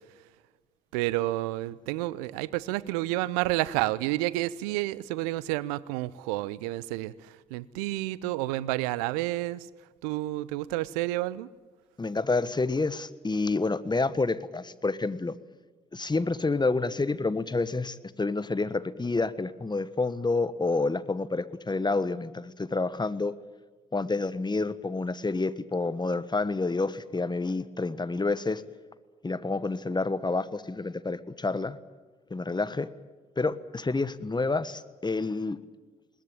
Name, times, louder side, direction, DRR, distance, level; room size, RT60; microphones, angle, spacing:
voice 1, 0.9-9.7 10.0-11.5, right 17 dB, 80° right, 20 dB, 0.6 m, -30 dB
voice 2, 12.0-15.3 15.9-23.3 23.9-28.6 29.2-31.8 32.3-32.9 33.4-35.6, left 3 dB, 20° left, 15 dB, 1.4 m, -29 dB
21.5 x 19.0 x 8.9 m, 1.3 s
hypercardioid pair, 40°, 19 cm